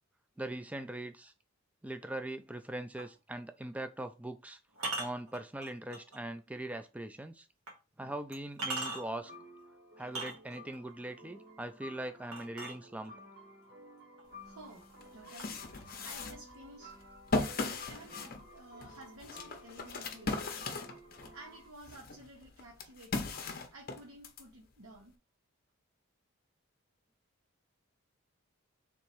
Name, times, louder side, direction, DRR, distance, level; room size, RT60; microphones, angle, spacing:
voice 1, 0.4-1.3 1.8-4.6 5.0-7.5 8.0-9.3 10.0-13.1, right 1 dB, 5° right, 0.3 m, -41 dB
sound 1, 3.0-3.2 4.7-6.2 6.7-6.8 7.7-7.8 8.3-9.3 10.0-10.8 12.3-13.3 14.2-14.3 14.7-15.1 15.4-16.4, right 2 dB, 90° right, 1.4 m, -40 dB
sound 2, 9.1-21.7, left 1 dB, 45° right, 1.2 m, -54 dB
voice 2, 14.4-15.7 16.0-17.0 17.6-20.5 21.3-23.4 23.7-25.2, right 1 dB, 70° right, 0.9 m, -53 dB
sound 3, 14.5-14.6 15.0-21.4 21.8-24.4, left 3 dB, 45° left, 0.7 m, -38 dB
3.5 x 3.0 x 4.4 m
head